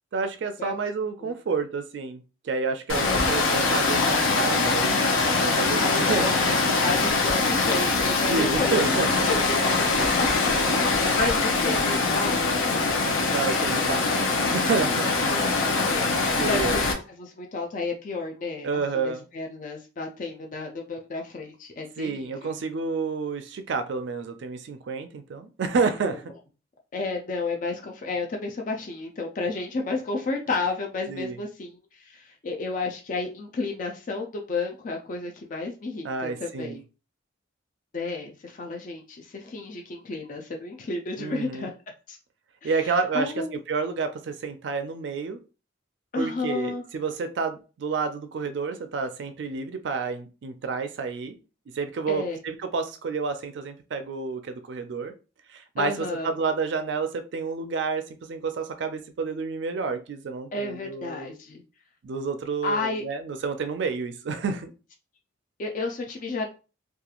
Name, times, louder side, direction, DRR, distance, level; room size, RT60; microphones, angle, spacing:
voice 1, 0.1-5.0 5.3-6.3 8.3-9.3 13.3-15.1 16.4-16.8 18.6-19.3 22.0-26.2 31.1-31.4 36.0-36.8 41.2-41.7 42.6-45.4 46.2-51.4 51.7-55.1 55.5-61.3 62.0-64.7, right 4 dB, 65° right, 8 dB, 0.3 m, -29 dB
Water, 2.9-16.9, left 3 dB, 90° left, 0.6 m, -23 dB
voice 2, 5.8-9.9 10.1-12.8 15.3-16.8 17.2-22.6 26.0-26.2 26.9-36.8 37.9-41.7 42.1-42.2 42.6-43.6 46.1-46.8 52.1-52.4 55.8-56.3 60.5-61.6 62.6-63.0 65.6-66.5, left 3 dB, 40° left, 3 dB, 0.3 m, -32 dB
2.9 x 2.3 x 2.4 m, 0.33 s
head